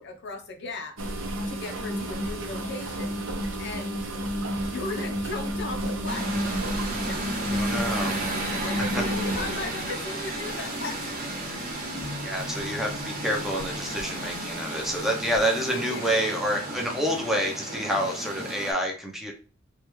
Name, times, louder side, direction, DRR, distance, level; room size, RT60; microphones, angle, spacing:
voice 1, 0.0-4.0 4.7-7.6 8.4-11.1 15.6-16.2, left 3 dB, 60° left, 3 dB, 0.7 m, -37 dB
sound 1, 1.0-11.1 11.8-12.1 12.6-12.8 13.6-14.0 14.3-14.4 15.3-15.4, equal, 80° right, 0.7 m, -31 dB
sound 2, 6.1-18.7, right 1 dB, 45° right, 1.0 m, -34 dB
voice 2, 7.5-8.2 8.9-9.0 12.2-19.3, equal, ahead, 1 dB, 0.6 m, -28 dB
3.3 x 2.4 x 3.1 m, 0.37 s
head